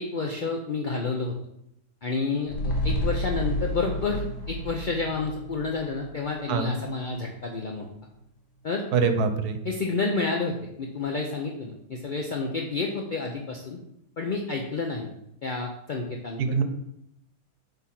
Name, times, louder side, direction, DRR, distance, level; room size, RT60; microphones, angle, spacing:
voice 1, 0.0-1.3 2.0-7.9 8.6-8.8 9.6-13.8 14.2-15.1 15.4-16.4, left 4 dB, 55° left, 1 dB, 0.5 m, -30 dB
sound 1, 2.5-7.0 7.3-7.4, left 1 dB, 80° left, 1.7 m, -31 dB
voice 2, 8.9-9.6 16.4-16.6, right 5 dB, 70° right, 8 dB, 1.3 m, -24 dB
8.0 x 3.6 x 5.9 m, 0.79 s
omnidirectional pair, 1.8 m